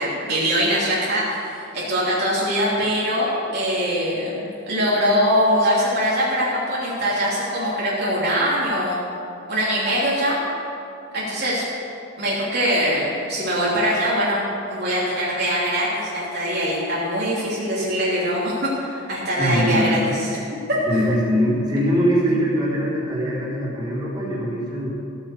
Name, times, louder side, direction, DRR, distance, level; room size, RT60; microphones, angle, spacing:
voice 1, 0.0-9.0 9.5-10.4 11.1-11.6 12.2-20.4 20.7-20.8, equal, 50° right, -7 dB, 3.0 m, -22 dB
voice 2, 19.4-20.1 20.9-24.9, equal, 20° right, -8 dB, 4.0 m, -22 dB
15.5 x 8.8 x 7.1 m, 2.7 s
head